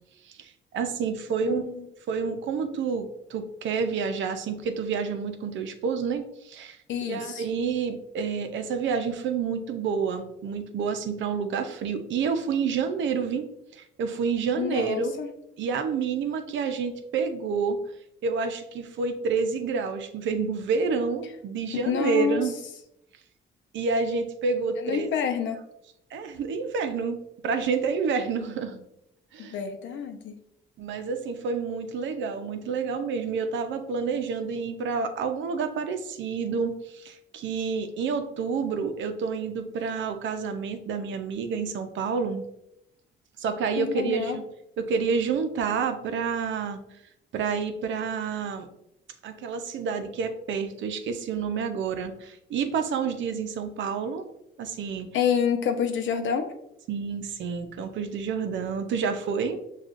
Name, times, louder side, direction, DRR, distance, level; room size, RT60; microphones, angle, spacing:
voice 1, 0.3-1.7 2.1-6.8 7.0-15.1 15.6-17.8 18.2-22.5 23.7-25.1 26.1-28.9 29.3-29.5 30.8-42.4 43.4-44.4 44.8-46.8 47.3-48.7 49.2-54.3 54.6-55.1 56.9-59.6, right 5 dB, 70° right, 7 dB, 0.6 m, -29 dB
voice 2, 1.4-1.9 6.9-7.5 14.6-15.3 21.7-22.5 24.8-25.6 29.4-30.4 43.8-44.4 55.1-56.5, left 7 dB, 75° left, 7 dB, 0.6 m, -28 dB
6.2 x 2.4 x 2.4 m, 0.79 s
cardioid pair, 90°, 20 cm